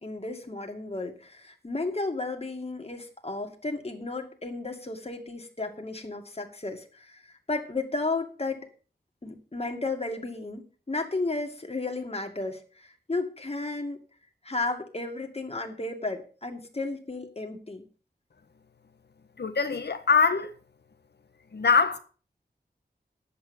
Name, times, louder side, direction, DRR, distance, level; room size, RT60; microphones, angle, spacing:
voice 1, 0.0-8.7 9.2-14.0 14.4-17.9, left 3 dB, 35° left, 2.4 m, -33 dB
voice 2, 19.4-20.5 21.5-22.0, left 5 dB, 80° left, 1.4 m, -23 dB
10.5 x 8.5 x 7.0 m
wide cardioid pair, 85°, 17 cm